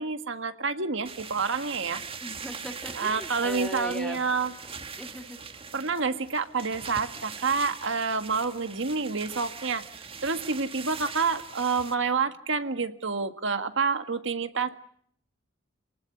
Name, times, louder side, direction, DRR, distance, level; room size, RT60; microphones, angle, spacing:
voice 1, 0.0-2.0 3.0-4.5 5.7-14.7, right 4 dB, 65° right, 8 dB, 1.7 m, -28 dB
sound 1, 1.0-11.9, right 5 dB, 30° right, 1.9 m, -41 dB
voice 2, 2.2-4.2 5.0-5.4, equal, 5° left, 5 dB, 2.9 m, -39 dB
28.5 x 19.0 x 9.3 m, 0.66 s
head